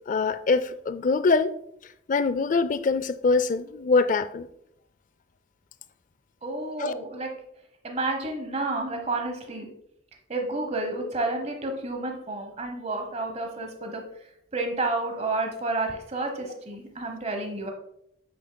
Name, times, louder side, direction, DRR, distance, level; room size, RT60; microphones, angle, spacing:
voice 1, 0.1-1.5 2.1-4.5 6.8-6.9, left 4 dB, 50° left, 0.4 m, -23 dB
voice 2, 6.4-7.3 7.8-9.7 10.3-14.0 14.5-17.7, right 2 dB, 40° right, 1.1 m, -30 dB
7.7 x 6.6 x 2.2 m
head